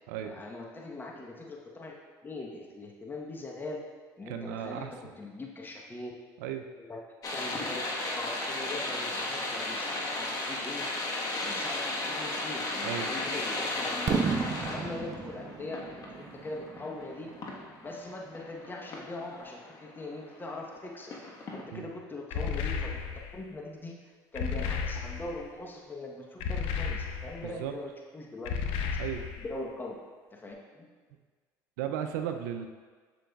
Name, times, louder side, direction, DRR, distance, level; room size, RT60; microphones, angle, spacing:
voice 1, 0.2-1.9 2.2-3.8 4.2-6.1 6.8-7.0 7.3-10.9 11.3-14.3 14.7-17.3 17.8-21.1 21.5-24.0 24.3-29.0 29.4-30.0 30.3-30.9, left 2 dB, 20° left, -1 dB, 1.0 m, -41 dB
voice 2, 4.3-4.9 6.4-6.7 12.8-13.1 21.7-21.9 27.4-27.8 29.0-29.2 31.8-32.7, right 9 dB, 85° right, 6 dB, 0.5 m, -35 dB
sound 1, 7.2-20.7 21.1-21.6, left 2 dB, 40° left, 1.3 m, -35 dB
Fireworks, 14.1-17.9, right 5 dB, 40° right, 0.6 m, -33 dB
sound 2, 22.3-23.4 24.4-25.4 26.4-27.5 28.5-29.5, left 6 dB, 70° left, 0.6 m, -33 dB
7.5 x 6.9 x 2.3 m, 1.5 s
supercardioid pair, 80°, 9 cm